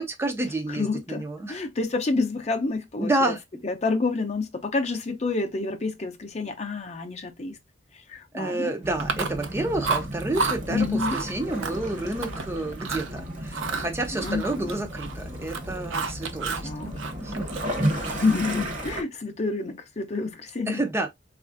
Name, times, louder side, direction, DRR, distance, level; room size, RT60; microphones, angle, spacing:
voice 1, 0.0-1.6 3.0-3.4 8.3-16.7 17.2-17.5 18.1-18.2 20.7-21.1, right 2 dB, 15° right, 0.4 m, -29 dB
voice 2, 0.7-3.3 3.6-7.6 8.1-8.7 10.7-11.2 14.1-14.7 16.6-16.9 18.1-20.8, left 3 dB, 35° left, 0.6 m, -28 dB
Waves surf / Splash splatter / Trickle dribble, 8.8-19.0, right 1 dB, 45° right, 0.9 m, -33 dB
Chewing mastication, 9.0-9.5 9.8-10.6 11.0-11.3 11.6-12.4 12.8-13.1 13.5-15.2 15.4-16.7 17.0-18.3, right 4 dB, 85° right, 0.5 m, -30 dB
4.0 x 2.4 x 2.5 m
head